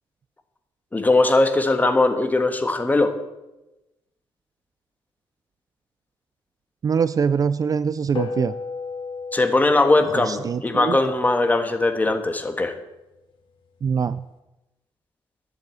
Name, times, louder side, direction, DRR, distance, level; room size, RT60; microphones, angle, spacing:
voice 1, 0.9-3.1 9.3-12.7, left 2 dB, 15° left, 7 dB, 1.5 m, -20 dB
voice 2, 6.8-8.5 10.1-11.0 13.8-14.2, right 6 dB, 35° right, 15 dB, 0.4 m, -23 dB
sound 1, 8.1-12.8, left 5 dB, 50° left, 2.2 m, -35 dB
11.0 x 7.8 x 9.1 m, 0.98 s
cardioid pair, 125°, 10 cm